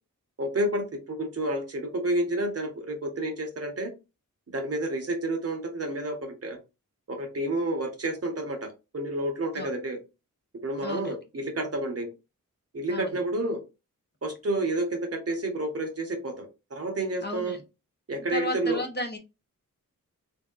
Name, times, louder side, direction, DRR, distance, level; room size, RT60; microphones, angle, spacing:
voice 1, 0.4-3.9 4.5-6.6 7.1-10.0 10.6-12.1 12.7-13.6 14.2-17.5 18.1-18.8, right 1 dB, 45° right, 4 dB, 1.0 m, -30 dB
voice 2, 10.8-11.1 12.9-13.2 17.2-17.6 18.3-19.2, left 1 dB, 30° left, 3 dB, 0.7 m, -33 dB
3.5 x 2.7 x 2.4 m, 0.27 s
wide cardioid pair, 90°, 34 cm